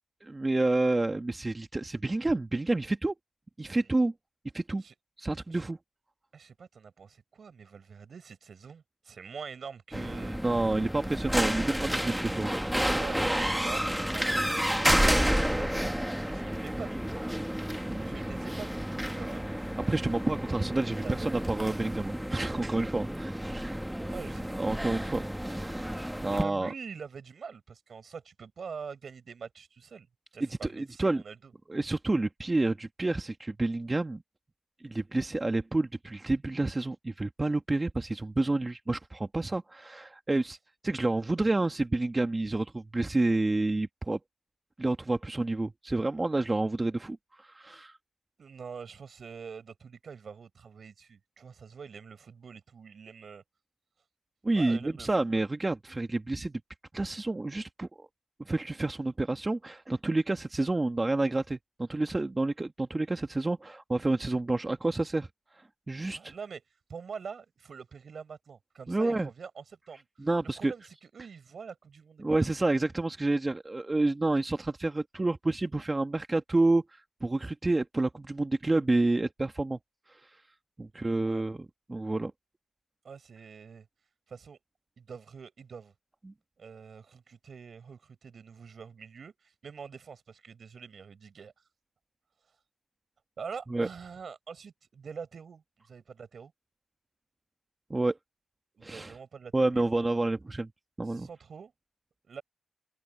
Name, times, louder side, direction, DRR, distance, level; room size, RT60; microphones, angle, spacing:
voice 1, 0.2-3.1 3.6-4.1 4.5-4.8 5.2-5.8 10.4-12.5 17.8-18.1 19.9-23.8 24.6-26.7 30.6-31.2 31.7-34.2 34.8-40.6 40.8-44.2 44.8-48.0 54.4-56.5 56.9-58.1 58.4-65.3 65.9-66.3 68.9-69.3 70.2-70.7 72.2-79.8 80.1-80.3 80.8-82.3 86.2-86.3 93.7-93.9 97.9-98.2 98.8-99.1 99.5-100.7 101.0-101.3, right 2 dB, 30° right, 1.4 m, -29 dB
voice 2, 6.3-10.4 12.9-14.3 14.6-17.0 18.0-19.4 21.0-21.4 24.1-24.5 26.3-30.1 30.3-31.5 48.4-53.4 54.6-55.4 66.1-66.6 66.9-72.5 81.0-81.4 83.0-83.9 84.3-84.6 85.0-85.9 86.6-91.5 93.4-96.5 98.7-100.1 101.1-101.7 102.3-102.4, right 6 dB, 65° right, 5.9 m, -45 dB
sound 1, 9.9-26.4, equal, 5° right, 1.5 m, -30 dB
open air
cardioid pair, 60°, 0 cm